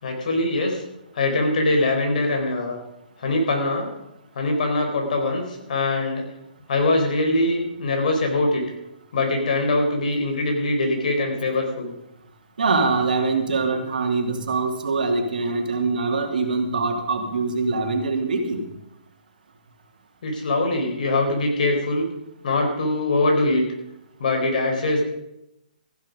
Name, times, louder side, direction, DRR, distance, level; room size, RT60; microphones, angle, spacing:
voice 1, 0.0-0.8 1.1-2.8 3.2-3.9 4.3-6.2 6.7-8.6 9.1-11.9 20.2-22.1 22.4-23.6 24.2-25.0, left 2 dB, 60° left, 3 dB, 4.5 m, -22 dB
voice 2, 12.6-18.7, right 3 dB, 70° right, 3 dB, 2.8 m, -23 dB
15.0 x 10.5 x 5.3 m, 0.88 s
hypercardioid pair, 140°, 5 cm